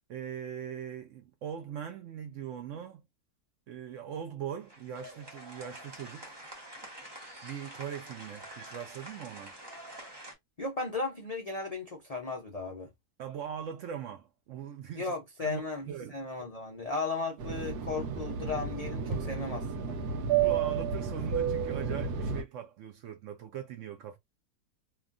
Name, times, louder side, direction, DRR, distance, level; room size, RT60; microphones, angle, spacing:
voice 1, 0.1-3.0 3.7-6.4 7.4-9.6 13.2-15.1 15.4-16.1 20.4-24.2, right 8 dB, 70° right, 0.7 m, -40 dB
sound 1, 4.6-10.3, right 1 dB, 30° right, 0.5 m, -47 dB
voice 2, 10.6-12.9 14.9-20.0, left 3 dB, 75° left, 0.3 m, -36 dB
Fixed-wing aircraft airplane, 17.4-22.4, right 7 dB, 85° right, 1.2 m, -31 dB
2.9 x 2.3 x 2.4 m
omnidirectional pair, 1.6 m